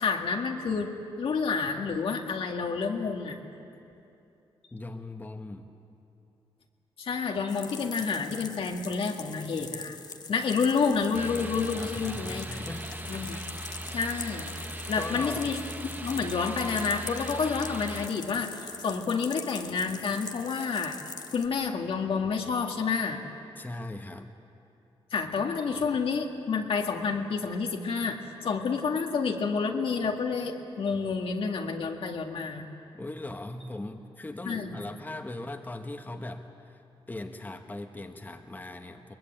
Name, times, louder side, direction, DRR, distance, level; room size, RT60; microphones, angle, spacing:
voice 1, 0.0-3.4 7.0-10.0 10.3-12.5 13.1-13.4 13.9-21.0 21.3-23.2 25.1-32.6 34.5-34.7, left 5 dB, 65° left, 2 dB, 1.9 m, -29 dB
voice 2, 4.7-5.7 11.7-13.5 15.0-15.5 23.6-24.3 32.9-36.8 37.1-39.1, left 2 dB, 20° left, 4 dB, 1.3 m, -39 dB
sound 1, 7.5-21.5, left 5 dB, 45° left, 1.2 m, -43 dB
sound 2, 11.1-18.1, right 1 dB, 20° right, 0.9 m, -39 dB
21.5 x 21.5 x 9.0 m, 2.8 s
cardioid pair, 90°, 10 cm